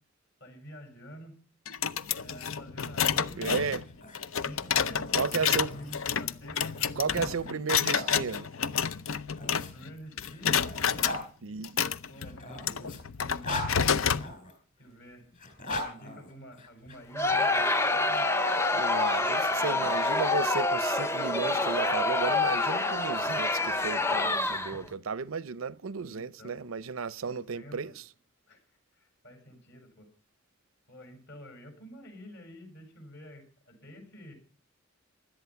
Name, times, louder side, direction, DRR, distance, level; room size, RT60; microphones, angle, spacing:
voice 1, 0.4-1.4 2.2-3.5 4.4-7.9 9.4-11.3 12.1-14.0 14.8-15.3 15.8-18.3 19.4-20.0 26.1-26.6 27.3-27.9 28.5-28.6 28.9-30.1 30.9-34.4, equal, 65° left, 6.2 m, -48 dB
sound 1, 1.7-9.9 10.2-11.2 11.6-14.3, left 7 dB, 90° left, 0.7 m, -29 dB
voice 2, 3.4-3.8 5.1-5.7 7.0-8.5 11.4-11.8 18.7-28.0, right 5 dB, 90° right, 0.6 m, -34 dB
sound 2, 3.5-8.1 9.1-11.3 12.2-14.5 15.3-17.0, left 2 dB, 40° left, 4.3 m, -40 dB
Crowd, 17.1-24.9, left 2 dB, 15° left, 0.6 m, -27 dB
16.5 x 12.0 x 5.7 m
head